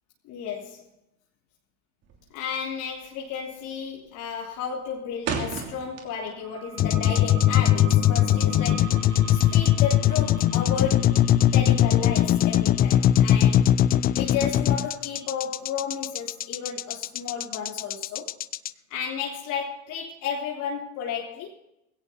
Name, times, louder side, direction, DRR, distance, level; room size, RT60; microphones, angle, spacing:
voice 1, 0.3-0.8 2.3-13.7 14.2-18.4 18.9-21.5, left 7 dB, 50° left, 3.5 m, -33 dB
sound 1, 2.0-2.4 2.7-3.1 3.4-3.8 4.2-6.5 6.8-8.3, right 5 dB, 40° right, 3.0 m, -34 dB
sound 2, 6.4-17.7, right 4 dB, 75° right, 7.3 m, -42 dB
sound 3, 6.8-18.7, left 11 dB, 25° left, 0.4 m, -21 dB
20.5 x 17.0 x 2.9 m
hypercardioid pair, 100°, 39 cm